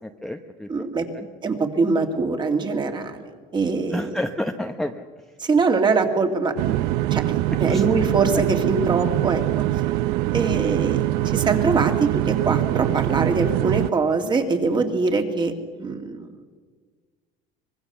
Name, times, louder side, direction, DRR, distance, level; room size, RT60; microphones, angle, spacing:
voice 1, 0.0-0.9 1.1-1.3 3.9-5.0 7.7-7.9, left 1 dB, ahead, 4 dB, 0.9 m, -30 dB
voice 2, 0.7-1.1 1.4-4.2 5.4-6.8 7.1-9.6 10.3-16.3, right 4 dB, 25° right, 5 dB, 2.5 m, -23 dB
sound 1, 6.6-13.9, right 15 dB, 70° right, 0.6 m, -23 dB
24.5 x 20.5 x 7.0 m, 1.5 s
cardioid pair, 125°, 18 cm